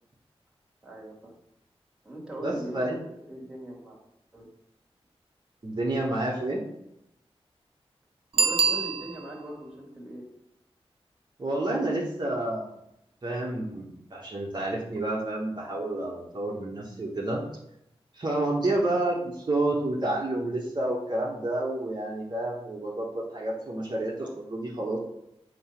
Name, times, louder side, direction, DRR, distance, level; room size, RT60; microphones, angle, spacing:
voice 1, 0.8-1.4 2.0-4.0 4.3-4.5 8.3-10.2, right 1 dB, 10° right, -4 dB, 2.4 m, -40 dB
voice 2, 2.4-3.0 5.6-6.6 11.4-12.7 13.2-17.4 18.1-25.0, right 2 dB, 45° right, -4 dB, 1.3 m, -29 dB
Bicycle bell, 8.3-9.5 15.0-15.1, right 5 dB, 60° right, 0.4 m, -25 dB
7.8 x 3.0 x 5.8 m, 0.82 s
wide cardioid pair, 80°, 11 cm